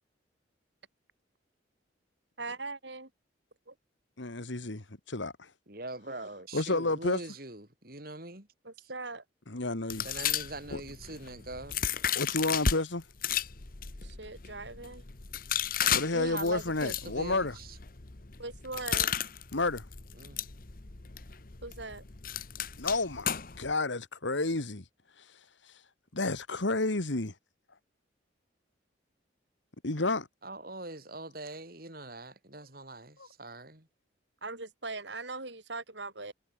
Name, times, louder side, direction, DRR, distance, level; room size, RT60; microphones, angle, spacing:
voice 1, 2.4-3.1 3.7-3.8 8.6-9.2 14.0-15.0 18.4-19.1 21.6-22.0 34.4-36.3, right 3 dB, 70° right, 5.8 m, -40 dB
voice 2, 4.2-5.3 6.5-7.2 9.5-10.0 10.7-10.8 12.2-13.0 15.9-17.5 19.5-19.8 22.8-24.8 26.1-27.3 29.8-30.3, left 2 dB, 75° left, 1.9 m, -30 dB
voice 3, 5.7-8.5 8.8-8.9 10.0-11.8 16.1-17.8 20.1-20.5 30.4-33.9, right 2 dB, 50° right, 4.5 m, -42 dB
sound 1, 9.9-12.8 13.2-23.7, left 8 dB, 45° left, 1.2 m, -34 dB
head